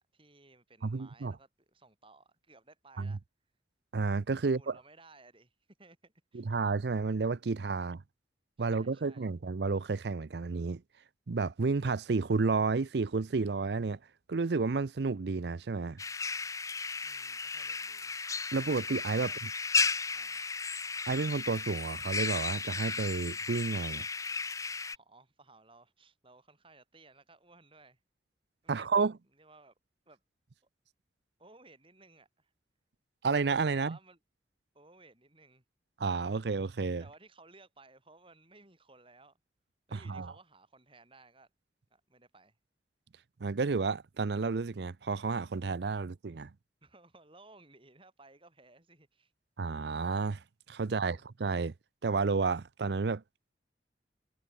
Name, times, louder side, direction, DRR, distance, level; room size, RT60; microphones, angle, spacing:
voice 1, 0.1-3.2 4.4-6.6 8.6-9.3 17.0-18.2 19.1-19.4 20.1-20.4 24.9-28.0 28.6-29.7 30.1-30.2 31.4-32.5 33.7-34.2 34.7-35.6 37.0-39.4 39.9-41.5 41.9-42.6 46.8-49.3 51.1-51.2, right 3 dB, 30° right, 7.5 m, -59 dB
voice 2, 0.8-1.4 3.0-3.2 3.9-4.8 6.3-8.0 8.6-10.8 11.3-14.0 14.3-16.0 18.5-19.3 21.1-24.1 28.7-29.1 33.2-34.0 36.0-37.0 39.9-40.3 43.4-46.5 49.6-51.7 52.0-53.2, right 4 dB, 65° right, 0.6 m, -31 dB
sound 1, 16.0-25.0, left 4 dB, 20° left, 0.7 m, -34 dB
head